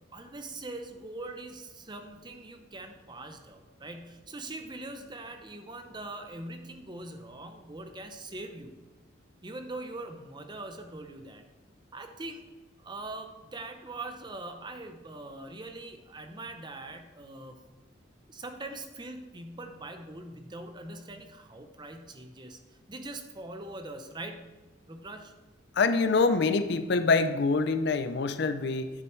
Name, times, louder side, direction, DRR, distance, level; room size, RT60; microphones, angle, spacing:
voice 1, 0.1-8.8 9.4-11.5 11.9-12.5 12.8-17.6 18.3-24.5 24.9-25.3, right 2 dB, 20° right, 6 dB, 0.6 m, -42 dB
voice 2, 25.7-28.9, left 4 dB, 55° left, 10 dB, 0.5 m, -25 dB
10.5 x 6.1 x 3.2 m, 1.2 s
head